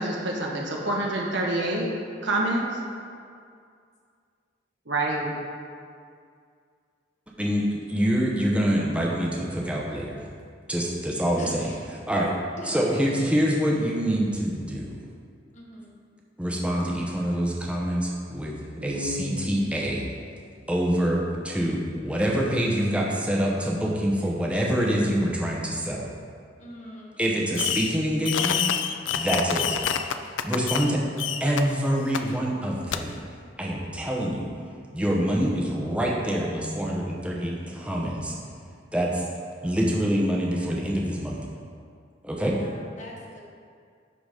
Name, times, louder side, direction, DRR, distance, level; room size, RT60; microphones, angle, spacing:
voice 1, 0.0-1.9 2.2-2.6 4.9-5.3 18.8-19.6, right 1 dB, 70° right, -2 dB, 1.4 m, -27 dB
voice 2, 7.4-10.3 10.7-12.3 12.7-15.0 16.4-18.5 18.8-20.0 20.7-26.1 27.2-28.6 29.1-29.8 30.4-31.0 31.4-33.1 33.6-34.5 34.9-38.3 38.9-39.2 39.6-41.4 42.2-42.6, equal, 5° right, -3 dB, 0.9 m, -26 dB
voice 3, 11.4-11.8 12.6-13.2 15.5-15.9 26.6-27.3 42.4-43.4, left 1 dB, 40° left, -2 dB, 1.3 m, -43 dB
Fireworks, 27.6-28.0 28.2-30.9 31.2-31.6 32.1-32.2 32.9-33.0, left 8 dB, 80° left, 0.4 m, -27 dB
11.5 x 4.0 x 5.0 m, 2.2 s
head